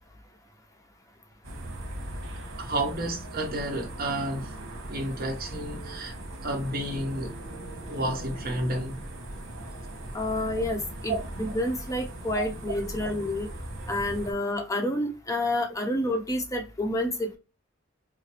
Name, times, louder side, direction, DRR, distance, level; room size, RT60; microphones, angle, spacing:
sound 1, 1.4-14.3, right 1 dB, 85° right, 1.2 m, -39 dB
voice 1, 2.6-4.5 4.9-6.2 6.4-7.3 7.9-9.0 11.1-11.2 12.4-12.5, right 1 dB, 50° right, 1.1 m, -31 dB
voice 2, 10.1-13.5 13.9-17.4, left 1 dB, 15° left, 0.8 m, -29 dB
4.8 x 2.0 x 3.0 m
head